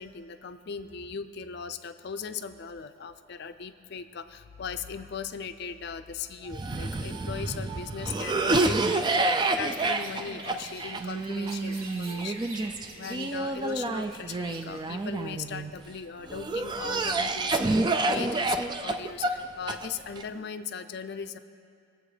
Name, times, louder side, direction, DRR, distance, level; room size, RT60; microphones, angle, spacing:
voice 1, 0.0-12.7 13.0-21.4, left 6 dB, 55° left, 10 dB, 0.4 m, -39 dB
Cough, 6.5-15.7 16.3-20.2, right 2 dB, 20° right, 0.3 m, -29 dB
Chirp tweet, 8.8-15.7, right 2 dB, 80° right, 2.2 m, -46 dB
21.5 x 7.8 x 3.3 m, 2.4 s
head